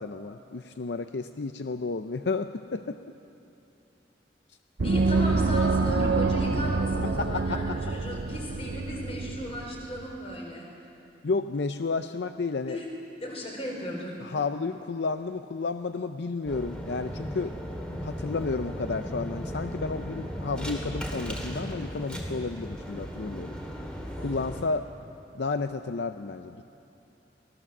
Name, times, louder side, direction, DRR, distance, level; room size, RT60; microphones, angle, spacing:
voice 1, 0.0-3.0 7.2-7.8 11.2-12.8 14.2-17.5 18.0-23.5 24.2-24.9 25.3-26.6, left 4 dB, 75° left, 9 dB, 0.6 m, -32 dB
voice 2, 4.8-10.7 12.7-12.9 13.2-14.2, equal, 35° left, -1 dB, 4.7 m, -35 dB
Gong, 4.8-10.0, right 3 dB, 80° right, 0.7 m, -27 dB
sound 1, 16.5-24.6, equal, 5° left, 2.6 m, -36 dB
24.5 x 18.0 x 7.2 m, 2.8 s
head